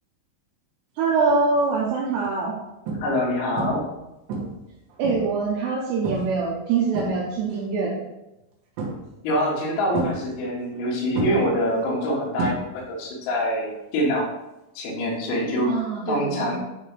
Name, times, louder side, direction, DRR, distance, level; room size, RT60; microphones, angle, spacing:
voice 1, 1.0-2.5 5.0-8.0 15.6-16.6, right 4 dB, 85° right, -3 dB, 2.5 m, -24 dB
sound 1, 1.2-1.5 2.1-2.3 2.9-3.3 3.6-4.0 4.3-5.4 6.0-6.4 6.7-7.6 8.8-9.3 9.9-10.8 11.1-13.0 13.3-13.7 15.8-15.9, right 2 dB, 70° right, 3.1 m, -31 dB
voice 2, 3.0-3.9 9.2-14.3 14.8-15.7 16.1-16.6, equal, 85° left, -3 dB, 4.4 m, -25 dB
11.5 x 3.8 x 3.1 m, 0.96 s
omnidirectional pair, 5.9 m